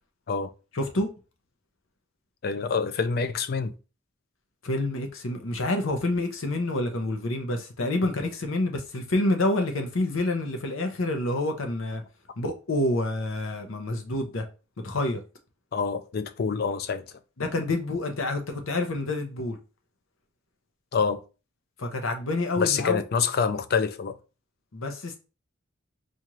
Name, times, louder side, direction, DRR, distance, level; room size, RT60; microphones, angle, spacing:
voice 1, 0.7-1.1 4.6-12.0 12.4-14.4 14.8-15.2 17.4-19.6 21.8-23.0 24.7-25.2, left 2 dB, 80° left, 0.8 m, -28 dB
voice 2, 2.4-3.7 15.7-17.1 20.9-21.2 22.6-24.2, left 5 dB, 50° left, 0.4 m, -26 dB
4.3 x 2.4 x 3.0 m
head